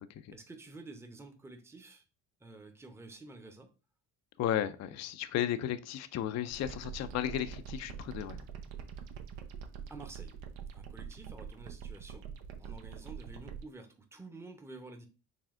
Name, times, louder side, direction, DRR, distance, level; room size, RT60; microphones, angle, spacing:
voice 1, 0.3-2.0 2.4-3.7 9.9-10.3 10.7-12.3 12.6-15.1, right 3 dB, 5° right, 0.6 m, -50 dB
voice 2, 4.4-8.4, left 11 dB, 40° left, 0.4 m, -34 dB
sound 1, 6.5-13.6, right 7 dB, 75° right, 0.7 m, -45 dB
5.0 x 3.3 x 2.4 m
supercardioid pair, 65°, 46 cm